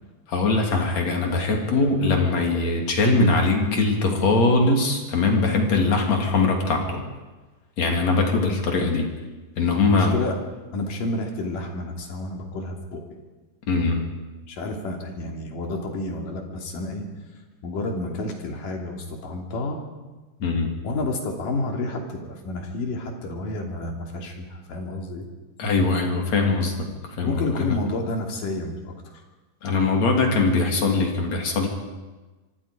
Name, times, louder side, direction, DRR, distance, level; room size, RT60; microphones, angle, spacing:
voice 1, 0.3-7.0 7.8-9.1 9.6-10.2 13.7-14.0 20.4-20.7 25.6-26.7 27.2-27.7 29.6-31.7, left 3 dB, 50° left, 2 dB, 3.9 m, -21 dB
voice 2, 9.9-10.4 10.7-13.0 14.5-17.1 17.6-19.8 20.8-25.3 27.2-29.2, left 2 dB, 65° left, 2 dB, 4.4 m, -30 dB
25.0 x 25.0 x 5.1 m, 1.2 s
omnidirectional pair, 4.2 m